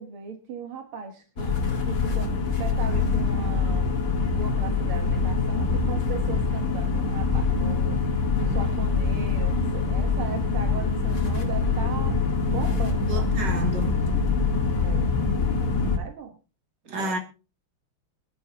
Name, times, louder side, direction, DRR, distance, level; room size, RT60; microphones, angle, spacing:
voice 1, 0.0-3.9 4.3-8.0 8.4-13.3 14.8-15.1 16.0-16.4 16.9-17.2, right 5 dB, 75° right, 2.3 m, -38 dB
sound 1, 1.4-16.0, left 4 dB, 40° left, 2.1 m, -24 dB
voice 2, 13.0-14.1 16.8-17.2, right 2 dB, 55° right, 3.1 m, -31 dB
23.0 x 10.5 x 2.9 m
omnidirectional pair, 2.4 m